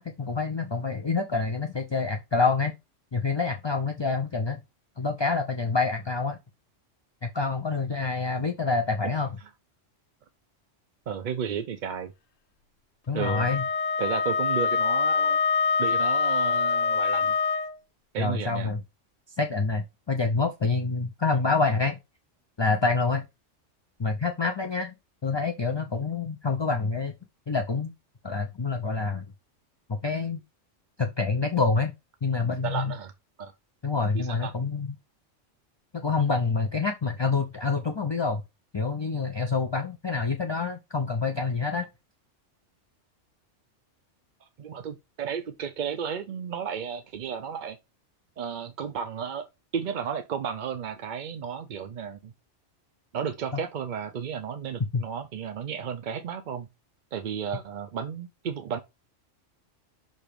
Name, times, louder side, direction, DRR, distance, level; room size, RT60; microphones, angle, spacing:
voice 1, 0.0-2.7 3.1-4.6 5.0-6.4 7.2-9.3 13.1-13.6 18.2-18.8 19.3-22.0 22.6-23.2 24.0-25.0 25.2-27.1 27.5-27.9 28.2-29.3 29.9-30.4 31.0-31.9 32.2-32.9 33.8-35.0 35.9-38.4 38.7-41.9 53.5-53.6 54.9-55.0, left 4 dB, 35° left, 0.4 m, -27 dB
voice 2, 11.1-12.1 13.1-13.5 14.0-15.4 15.8-17.4 18.1-18.7 32.6-33.1 33.4-33.5 34.1-34.5 44.6-47.8 48.4-49.5 49.7-52.3 53.1-56.7 57.1-58.8, right 7 dB, 55° right, 0.5 m, -33 dB
Wind instrument woodwind instrument, 13.2-17.7, left 5 dB, 85° left, 1.2 m, -25 dB
6.5 x 2.9 x 5.1 m
omnidirectional pair, 1.3 m